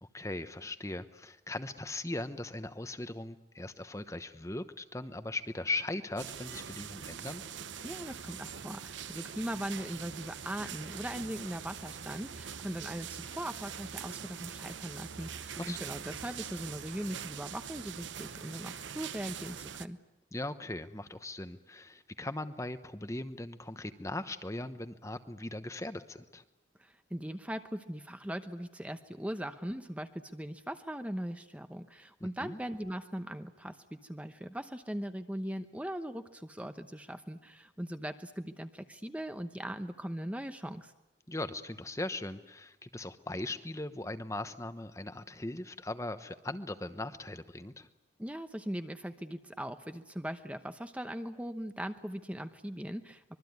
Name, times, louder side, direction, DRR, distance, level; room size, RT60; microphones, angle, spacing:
voice 1, 0.0-7.4 15.6-15.8 20.3-26.4 32.2-32.6 41.3-47.9, left 2 dB, 15° left, 10 dB, 1.0 m, -39 dB
sound 1, 6.2-19.9, right 7 dB, 80° right, 1.0 m, -43 dB
voice 2, 7.8-20.0 26.8-40.9 48.2-53.4, equal, 5° right, 8 dB, 0.9 m, -40 dB
25.5 x 23.0 x 9.5 m, 0.92 s
head